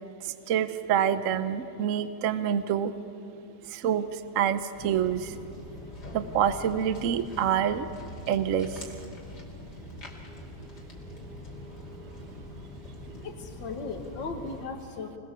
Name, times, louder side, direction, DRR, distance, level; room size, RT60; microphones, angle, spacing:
voice 1, 0.2-2.9 3.7-5.3 6.1-7.9 8.3-8.9, right 9 dB, 60° right, 11 dB, 0.9 m, -27 dB
Walk footsteps, 4.7-14.6, left 1 dB, 60° left, 3.2 m, -43 dB
voice 2, 13.2-15.2, left 4 dB, 80° left, 3 dB, 2.3 m, -37 dB
26.0 x 19.5 x 6.9 m, 2.5 s
omnidirectional pair, 2.0 m